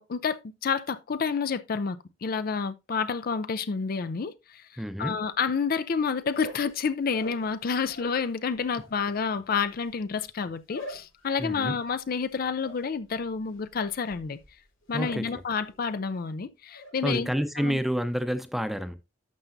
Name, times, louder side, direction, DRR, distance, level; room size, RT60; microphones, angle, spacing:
voice 1, 0.0-14.4 14.9-17.3 17.6-17.8, left 5 dB, 50° left, 0.4 m, -29 dB
voice 2, 4.8-5.2 11.4-11.7 14.9-15.3 17.0-19.0, equal, ahead, 0.7 m, -29 dB
sound 1, 6.2-8.3 8.5-15.3 15.6-16.1 16.4-16.9, left 1 dB, 90° left, 5.0 m, -44 dB
11.5 x 6.8 x 2.6 m
head